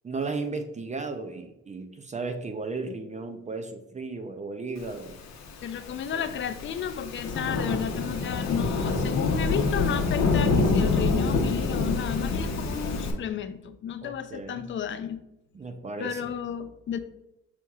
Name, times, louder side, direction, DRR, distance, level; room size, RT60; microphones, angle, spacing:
voice 1, 0.0-5.2 6.1-6.3 14.0-14.7 15.5-16.3, right 3 dB, 25° right, 0.4 m, -35 dB
Thunderstorm / Rain, 5.4-13.1, left 3 dB, 65° left, 0.8 m, -26 dB
voice 2, 5.6-15.2 16.0-17.0, left 8 dB, 40° left, 0.4 m, -33 dB
6.2 x 2.8 x 2.3 m
cardioid pair, 90°, 30 cm